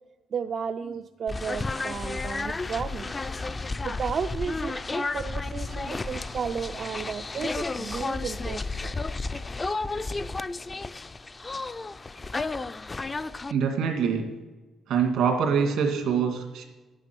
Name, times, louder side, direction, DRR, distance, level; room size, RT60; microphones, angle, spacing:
voice 1, 0.3-3.1 3.8-8.9, right 6 dB, 50° right, 8 dB, 0.4 m, -33 dB
sound 1, 1.3-13.5, left 3 dB, 25° left, 0.4 m, -32 dB
voice 2, 13.5-14.3 14.9-16.6, right 6 dB, 85° right, 3 dB, 2.3 m, -24 dB
11.0 x 9.0 x 6.1 m, 1.2 s
cardioid pair, 90°, 0 cm